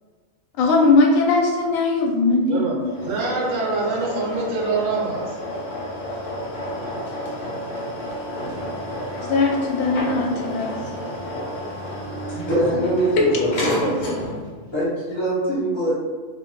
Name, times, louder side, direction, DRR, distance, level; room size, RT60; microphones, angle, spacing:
voice 1, 0.6-2.9 9.3-10.7 12.8-12.9 13.2-13.3, left 3 dB, 85° left, 0 dB, 1.0 m, -19 dB
voice 2, 2.5-2.8 3.0-5.3, right 3 dB, 75° right, -3 dB, 1.0 m, -25 dB
sound 1, 2.8-14.6, equal, 60° left, 0.5 m, -31 dB
voice 3, 12.3-14.2 14.7-15.9, right 1 dB, 25° left, -9 dB, 0.8 m, -23 dB
2.5 x 2.1 x 2.9 m, 1.4 s
omnidirectional pair, 1.4 m